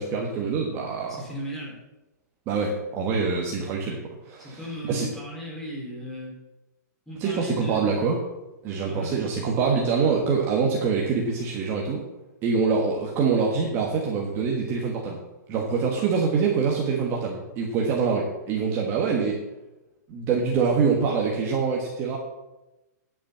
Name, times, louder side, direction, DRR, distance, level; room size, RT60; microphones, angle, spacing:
voice 1, 0.0-1.2 2.5-4.0 4.2-4.6 4.9-5.1 7.2-8.2 8.6-12.0 12.4-15.2 15.5-19.4 20.1-22.2, right 5 dB, 25° right, -2 dB, 1.4 m, -25 dB
voice 2, 1.1-1.8 4.4-6.4 7.1-8.0 8.8-9.2, equal, 5° left, -5 dB, 3.7 m, -36 dB
10.0 x 6.3 x 7.2 m, 1.0 s
hypercardioid pair, 155°, 10 cm